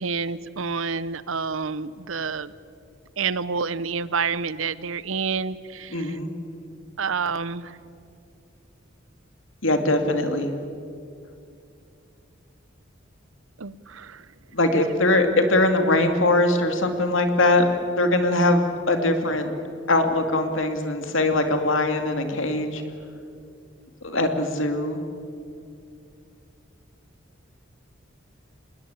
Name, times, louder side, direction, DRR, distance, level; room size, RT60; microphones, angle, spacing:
voice 1, 0.0-2.5 3.2-6.2 7.0-7.8 13.6-14.2, right 5 dB, 80° right, 17 dB, 0.8 m, -28 dB
voice 2, 5.9-6.3 9.6-10.5 14.5-19.5 19.9-22.8 24.0-25.0, left 2 dB, 75° left, 6 dB, 2.5 m, -21 dB
26.0 x 20.5 x 8.3 m, 2.4 s
head